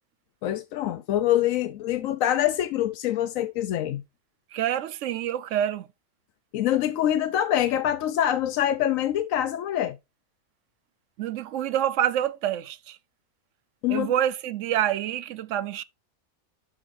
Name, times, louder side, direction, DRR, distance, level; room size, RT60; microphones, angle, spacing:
voice 1, 0.4-4.0 6.5-10.0 13.8-14.1, left 11 dB, 75° left, 1.0 m, -25 dB
voice 2, 4.5-5.9 11.2-13.0 13.9-15.8, right 11 dB, 70° right, 0.9 m, -27 dB
12.5 x 4.9 x 2.6 m
omnidirectional pair, 1.4 m